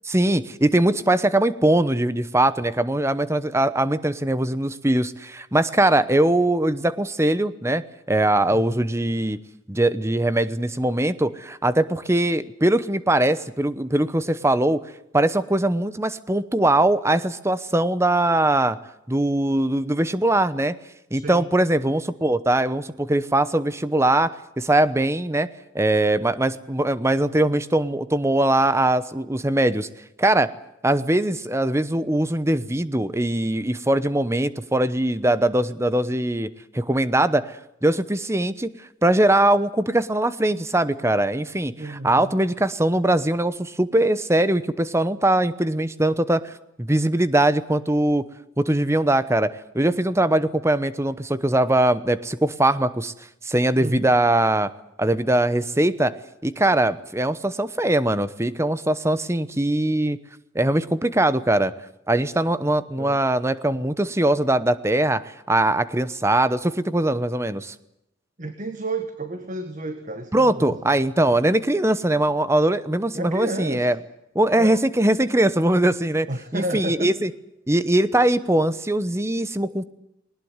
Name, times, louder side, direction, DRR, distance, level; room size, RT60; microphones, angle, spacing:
voice 1, 0.1-9.4 9.7-14.8 15.1-18.8 19.1-20.7 21.1-25.5 25.7-29.9 30.2-30.5 30.8-36.5 36.7-37.5 37.8-38.7 39.0-46.5 46.8-48.2 48.6-53.1 53.4-54.7 55.0-56.1 56.4-60.2 60.5-61.7 62.1-65.2 65.5-67.7 70.3-74.0 74.3-76.3 76.5-77.3 77.7-79.8, right 1 dB, 15° right, 15 dB, 1.0 m, -21 dB
voice 2, 21.1-21.5 41.8-42.3 53.8-54.1 63.0-63.2 68.4-71.0 73.1-73.9 74.6-74.8 76.3-77.1, right 2 dB, 40° right, 8 dB, 1.7 m, -31 dB
21.0 x 19.0 x 9.6 m, 0.83 s
head